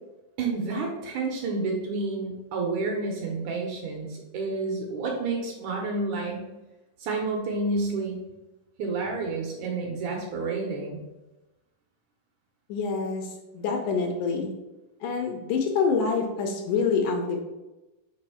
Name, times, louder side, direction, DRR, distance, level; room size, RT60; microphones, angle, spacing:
voice 1, 0.4-6.5 7.0-8.2 8.8-11.0, right 3 dB, 70° right, 1 dB, 2.0 m, -30 dB
voice 2, 12.7-14.5 15.0-17.4, left 5 dB, 75° left, 2 dB, 2.0 m, -26 dB
5.3 x 3.9 x 5.6 m, 1.0 s
omnidirectional pair, 4.0 m